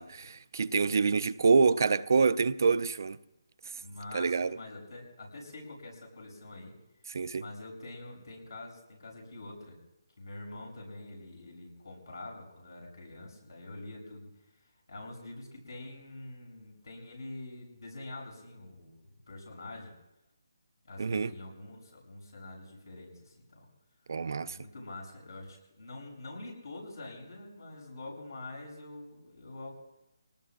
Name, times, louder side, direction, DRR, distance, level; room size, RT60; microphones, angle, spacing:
voice 1, 0.0-3.2 4.1-4.6 7.1-7.4 21.0-21.3 24.1-24.6, right 5 dB, 55° right, 0.5 m, -26 dB
voice 2, 3.8-6.7 7.4-9.8 10.2-14.3 14.9-19.9 20.8-23.6 24.4-29.8, left 2 dB, 80° left, 7.6 m, -45 dB
25.5 x 19.0 x 2.5 m
hypercardioid pair, 165°, 2 cm